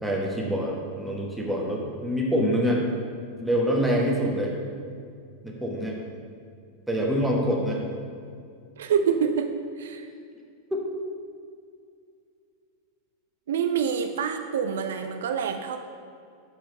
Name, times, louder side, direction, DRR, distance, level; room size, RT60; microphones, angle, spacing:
voice 1, 0.0-2.8 3.4-4.5 5.4-6.0 6.9-7.8 10.7-10.8, equal, 5° right, -1 dB, 1.2 m, -25 dB
voice 2, 8.8-10.1 13.5-15.8, right 7 dB, 60° right, 7 dB, 0.4 m, -26 dB
7.0 x 4.5 x 5.3 m, 2.3 s
figure-of-eight pair, 90°, 0 cm